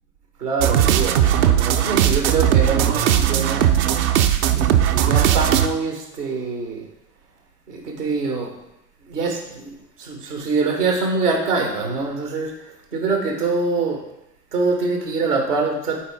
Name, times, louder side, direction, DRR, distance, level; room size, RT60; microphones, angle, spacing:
voice 1, 0.4-3.7 4.5-6.9 7.7-8.5 9.1-9.7 10.0-12.5 12.9-14.0 14.5-16.0, right 4 dB, 90° right, 1 dB, 1.6 m, -24 dB
sound 1, 0.6-5.7, right 10 dB, 65° right, 0.7 m, -18 dB
12.0 x 4.4 x 3.6 m, 0.86 s
figure-of-eight pair, 60°, 45 cm